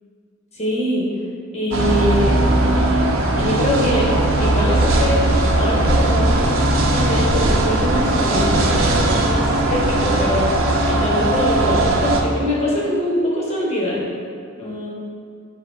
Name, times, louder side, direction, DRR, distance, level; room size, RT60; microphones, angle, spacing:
voice 1, 0.5-1.1 1.5-2.4 3.3-4.1 4.4-5.2 5.5-6.4 6.9-10.5 10.8-14.0 14.6-14.9, left 1 dB, 35° left, -5 dB, 0.9 m, -23 dB
sound 1, 1.7-12.2, right 1 dB, 75° right, 0.5 m, -18 dB
3.5 x 2.8 x 4.6 m, 2.2 s
head